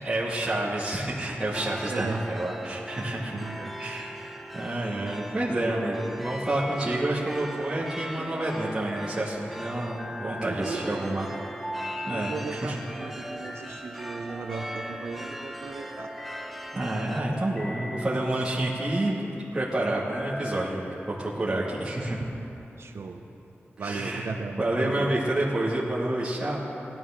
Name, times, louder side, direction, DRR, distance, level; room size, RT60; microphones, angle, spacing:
voice 1, 0.0-3.4 3.8-11.3 12.0-12.8 16.7-19.2 19.5-20.8 21.2-22.2 23.8-24.3 24.6-26.6, right 1 dB, 20° right, -8 dB, 1.9 m, -29 dB
sound 1, 1.5-17.2, right 1 dB, ahead, 0.7 m, -40 dB
voice 2, 1.8-2.2 3.3-3.8 10.4-11.4 12.1-16.1 22.8-23.3 23.8-25.1, right 4 dB, 75° right, 5 dB, 0.7 m, -36 dB
sound 2, 8.2-8.9 9.8-10.6 11.6-12.4 13.0-13.7 14.3-15.2 15.8-16.4 17.2-18.1 18.6-19.2 19.9-20.8, left 1 dB, 15° left, 1.5 m, -40 dB
18.5 x 12.5 x 3.7 m, 2.9 s
wide cardioid pair, 120°, 4 cm